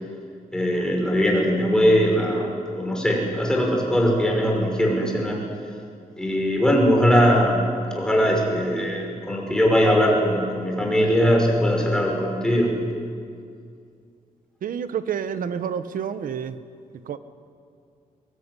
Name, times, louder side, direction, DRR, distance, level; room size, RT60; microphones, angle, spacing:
voice 1, 0.5-5.4 6.2-7.6 7.9-12.7, equal, 5° left, -1 dB, 5.8 m, -20 dB
voice 2, 14.6-16.6 16.9-17.2, right 8 dB, 75° right, 12 dB, 1.3 m, -29 dB
22.5 x 22.0 x 9.9 m, 2.3 s
wide cardioid pair, 155°, 14 cm